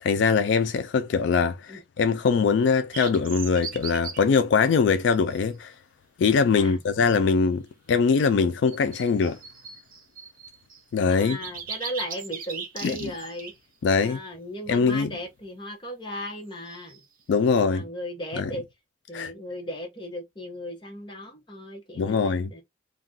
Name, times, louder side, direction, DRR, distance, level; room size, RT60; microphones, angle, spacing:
voice 1, 0.0-5.7 6.2-7.6 7.9-9.4 10.9-11.4 12.8-13.0 13.8-14.2 14.7-15.1 17.3-17.8 18.4-18.5 19.1-19.3 22.0-22.5, left 5 dB, 75° left, 0.3 m, -22 dB
sound 1, 2.9-4.2 5.0-5.4 8.7-10.8 11.2-13.5 16.6-17.0, right 6 dB, 50° right, 0.6 m, -38 dB
voice 2, 6.5-7.2 11.1-13.5 14.0-17.0 17.6-18.6 19.1-22.6, equal, 25° left, 0.9 m, -37 dB
2.3 x 2.3 x 3.7 m
head